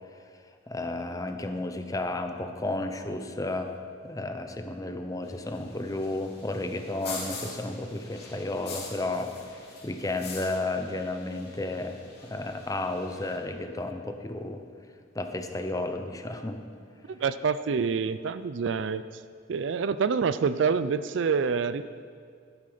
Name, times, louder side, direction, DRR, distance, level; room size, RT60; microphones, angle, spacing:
voice 1, 0.7-3.7 4.0-12.0 12.2-14.6 15.1-16.6, left 2 dB, 20° left, 6 dB, 0.7 m, -32 dB
sound 1, 5.2-13.4, left 3 dB, 55° left, 2.7 m, -44 dB
voice 2, 17.1-19.0 19.5-21.8, right 5 dB, 70° right, 13 dB, 0.4 m, -27 dB
12.5 x 9.6 x 5.1 m, 2.1 s
head